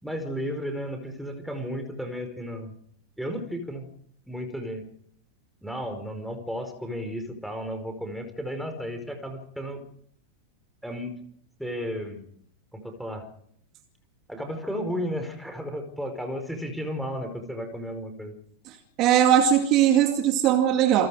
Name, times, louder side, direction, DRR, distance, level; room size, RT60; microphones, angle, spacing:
voice 1, 0.0-2.7 3.2-3.9 4.2-4.8 5.6-9.8 10.8-11.2 11.6-12.3 12.7-13.3 14.3-18.3, equal, ahead, 4.9 m, -33 dB
voice 2, 19.0-21.1, right 10 dB, 40° right, 2.3 m, -19 dB
28.0 x 22.0 x 5.0 m
figure-of-eight pair, 90°, 0 cm